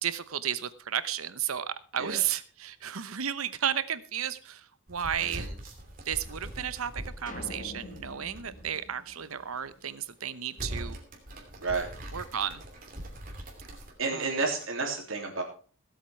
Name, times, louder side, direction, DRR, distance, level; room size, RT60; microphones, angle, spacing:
voice 1, 0.0-5.5 6.1-11.0 12.1-12.6 14.1-14.3, right 9 dB, 90° right, 15 dB, 0.9 m, -33 dB
sound 1, 4.9-8.8 9.1-9.2 9.8-10.1 10.5-14.8, right 1 dB, 40° right, 2.8 m, -42 dB
voice 2, 5.2-5.5 11.6-11.9 14.0-15.4, right 3 dB, 70° right, 1 dB, 3.2 m, -31 dB
sound 2, 7.3-9.8, left 1 dB, 40° left, 1.7 m, -45 dB
17.0 x 8.1 x 4.5 m, 0.39 s
head